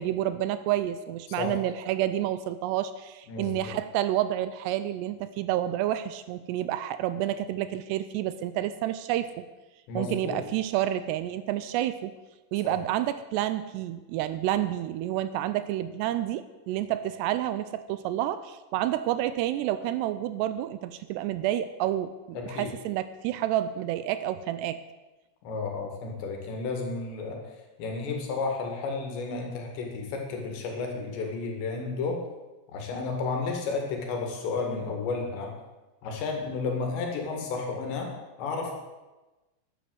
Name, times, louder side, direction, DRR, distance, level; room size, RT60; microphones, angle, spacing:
voice 1, 0.0-9.3 10.0-12.1 12.5-24.8, right 12 dB, 80° right, 13 dB, 2.6 m, -29 dB
voice 2, 3.3-3.7 9.9-10.4 12.6-12.8 22.3-22.7 25.4-27.4 27.8-32.2 32.7-35.5 36.0-38.1 38.4-38.7, left 4 dB, 75° left, 2 dB, 4.4 m, -32 dB
12.0 x 9.2 x 7.9 m, 1.1 s
omnidirectional pair, 5.1 m